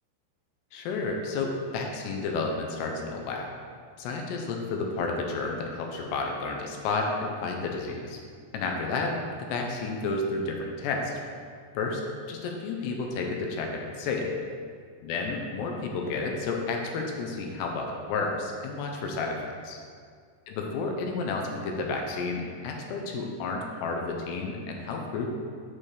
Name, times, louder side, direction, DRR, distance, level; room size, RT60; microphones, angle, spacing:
voice 1, 0.7-3.5 4.0-8.2 8.5-11.2 11.7-12.0 12.3-14.3 15.0-19.8 20.5-25.3, left 3 dB, 80° left, 1 dB, 2.7 m, -31 dB
7.3 x 6.6 x 3.3 m, 2.1 s
omnidirectional pair, 5.1 m